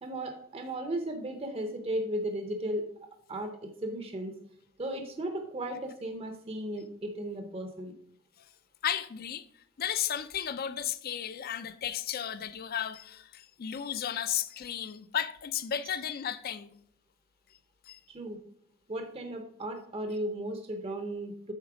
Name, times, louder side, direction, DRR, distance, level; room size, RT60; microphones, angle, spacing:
voice 1, 0.0-2.8 3.3-4.4 4.8-7.9 18.1-18.4 18.9-21.5, right 1 dB, 25° right, 0.6 m, -35 dB
voice 2, 8.8-9.5 9.8-16.7 17.9-18.0, left 9 dB, 45° left, 0.4 m, -34 dB
8.2 x 4.1 x 4.8 m
head